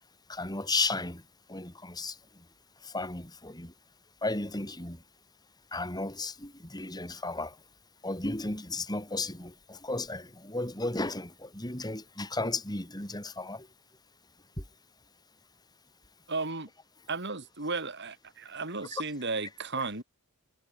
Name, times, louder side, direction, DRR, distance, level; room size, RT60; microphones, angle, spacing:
voice 1, 0.3-1.2 1.5-2.4 2.8-3.7 4.2-5.0 5.7-7.6 8.0-13.7 14.6-14.7, left 2 dB, 20° left, 4.1 m, -34 dB
voice 2, 16.3-16.7 17.1-20.0, right 3 dB, 50° right, 4.7 m, -34 dB
head